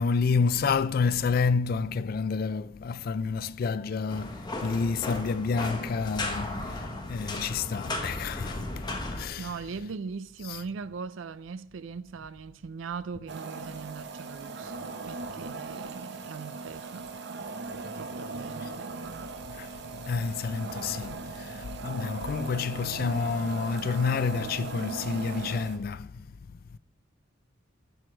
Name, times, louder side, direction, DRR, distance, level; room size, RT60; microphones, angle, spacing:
voice 1, 0.0-9.5 10.5-10.6 18.6-18.7 19.5-26.8, left 5 dB, 50° left, 0.3 m, -29 dB
sound 1, 4.1-9.3, left 2 dB, 20° left, 1.1 m, -35 dB
voice 2, 9.4-17.1 17.9-19.0, right 5 dB, 75° right, 0.4 m, -40 dB
sound 2, 13.3-25.8, right 3 dB, 60° right, 0.8 m, -39 dB
7.7 x 6.3 x 6.2 m
head